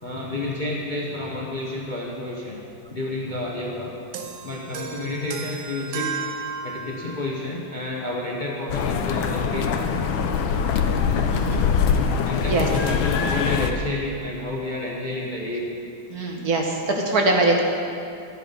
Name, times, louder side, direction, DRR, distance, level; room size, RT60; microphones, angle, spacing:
voice 1, 0.0-2.6 2.9-3.9 4.4-6.1 6.6-9.7 11.1-11.3 12.2-15.7, left 2 dB, 30° left, -3 dB, 0.9 m, -30 dB
sound 1, 4.1-7.3, right 5 dB, 75° right, 1.5 m, -33 dB
sound 2, 8.7-13.7, left 6 dB, 80° left, 1.5 m, -23 dB
voice 2, 11.3-11.7 12.5-12.7 16.1-17.6, right 2 dB, 55° right, 0 dB, 1.4 m, -22 dB
12.0 x 9.1 x 5.4 m, 2.5 s
omnidirectional pair, 2.2 m